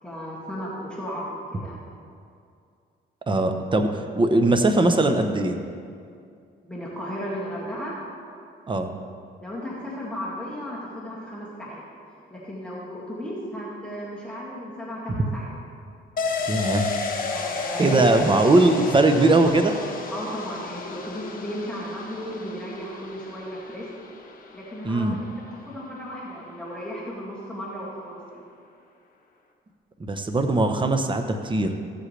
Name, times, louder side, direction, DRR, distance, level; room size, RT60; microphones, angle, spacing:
voice 1, 0.0-1.8 6.6-8.0 9.4-11.8 12.3-15.5 17.3-18.3 20.1-23.9 24.5-25.2 25.5-28.5, equal, 5° left, -7 dB, 2.2 m, -34 dB
voice 2, 3.3-5.6 8.7-8.9 15.2-15.3 16.5-16.9 17.8-19.8 24.8-25.2 30.0-31.8, right 2 dB, 25° right, 6 dB, 0.9 m, -20 dB
sound 1, 16.2-25.6 25.9-26.0, left 4 dB, 45° left, 1.3 m, -33 dB
15.0 x 7.6 x 3.3 m, 2.3 s
cardioid pair, 90°, 20 cm